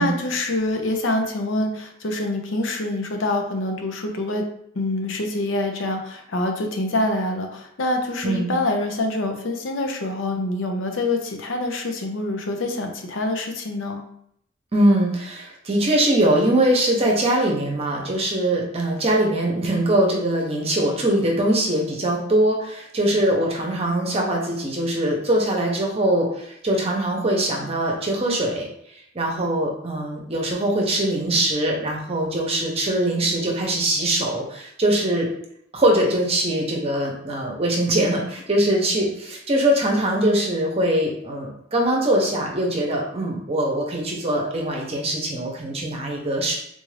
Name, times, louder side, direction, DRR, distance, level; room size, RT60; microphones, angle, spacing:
voice 1, 0.0-4.5 4.7-14.0, left 2 dB, 85° left, 3 dB, 0.6 m, -25 dB
voice 2, 14.7-28.7 29.1-35.3 35.7-46.6, right 1 dB, 30° right, 0 dB, 0.7 m, -22 dB
3.8 x 2.5 x 3.2 m, 0.71 s
head